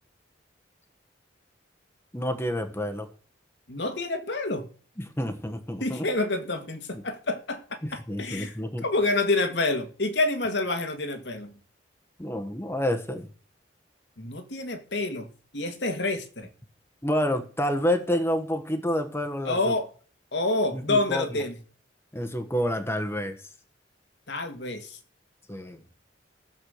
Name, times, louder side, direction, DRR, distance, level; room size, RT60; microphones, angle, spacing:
voice 1, 2.1-3.1 5.0-6.1 6.9-7.0 7.8-8.9 12.2-13.3 17.0-19.7 20.7-21.4 22.1-23.5 25.5-25.8, equal, 15° left, 1.2 m, -29 dB
voice 2, 3.7-4.7 5.8-7.6 7.9-8.6 8.8-11.6 14.2-15.3 15.5-16.5 19.4-19.9 20.3-21.5 24.3-25.0, left 2 dB, 65° left, 1.8 m, -28 dB
15.0 x 7.3 x 6.4 m
head